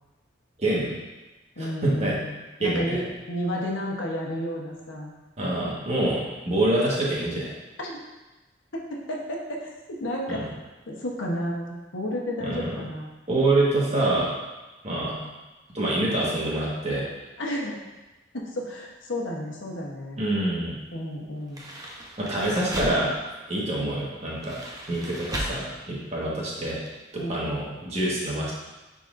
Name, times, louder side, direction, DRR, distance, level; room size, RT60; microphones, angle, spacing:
voice 1, 0.6-1.0 1.6-2.1 2.6-3.1 5.4-7.5 10.3-10.4 12.4-12.7 13.3-14.3 14.8-15.1 15.7-17.0 20.2-20.7 22.2-23.1 23.5-24.6 24.9-26.8 27.3-28.5, right 1 dB, 35° right, -5 dB, 1.5 m, -26 dB
voice 2, 1.6-5.1 7.8-8.0 8.9-10.5 10.9-13.1 15.0-15.3 17.4-17.8 18.3-20.2 20.9-21.7 22.3-22.6 27.1-27.5, equal, 80° left, -1 dB, 1.1 m, -32 dB
sound 1, 21.4-23.2 24.3-25.7 26.0-26.2 26.9-27.0 27.1-27.2, right 1 dB, 20° right, 0.8 m, -35 dB
9.5 x 4.0 x 2.6 m, 1.1 s
head